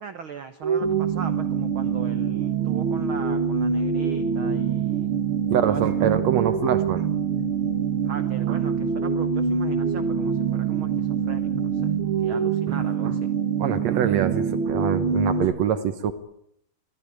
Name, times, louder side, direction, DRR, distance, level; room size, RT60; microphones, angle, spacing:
voice 1, 0.0-5.1 5.6-5.8 8.0-11.9 12.2-13.3, right 7 dB, 85° right, 10 dB, 1.1 m, -39 dB
sound 1, 0.6-15.4, right 6 dB, 50° right, 1.9 m, -25 dB
sound 2, 0.8-12.3, left 1 dB, 60° left, 6.4 m, -40 dB
voice 2, 5.5-7.1 8.5-8.6 12.7-12.8 13.0-13.1 13.6-16.1, right 9 dB, 65° right, 11 dB, 1.9 m, -25 dB
23.0 x 15.0 x 10.0 m, 0.73 s
omnidirectional pair, 4.0 m